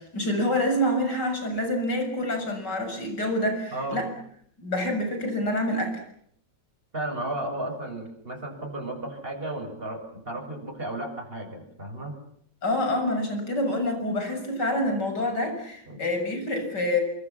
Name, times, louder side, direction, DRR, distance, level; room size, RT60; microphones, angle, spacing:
voice 1, 0.0-4.1 4.6-6.0 12.6-17.0, left 1 dB, 70° left, 5 dB, 7.5 m, -27 dB
voice 2, 3.7-4.0 6.9-12.2 15.9-16.0, right 1 dB, 30° right, 2 dB, 7.4 m, -34 dB
27.5 x 24.5 x 7.4 m, 0.68 s
omnidirectional pair, 1.9 m